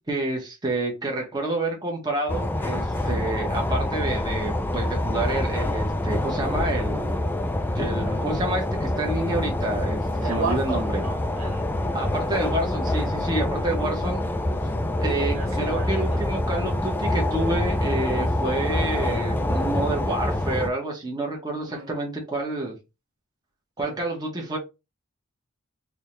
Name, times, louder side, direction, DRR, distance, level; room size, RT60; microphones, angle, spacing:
voice 1, 0.0-7.2 7.7-11.0 11.9-14.2 15.0-22.7 23.8-24.6, right 2 dB, 20° right, 1.0 m, -28 dB
sound 1, 2.3-20.7, left 1 dB, 10° left, 0.3 m, -26 dB
voice 2, 10.2-11.8 15.2-16.2 21.7-21.9 23.8-24.0, right 3 dB, 85° right, 1.5 m, -33 dB
3.7 x 2.7 x 3.2 m
head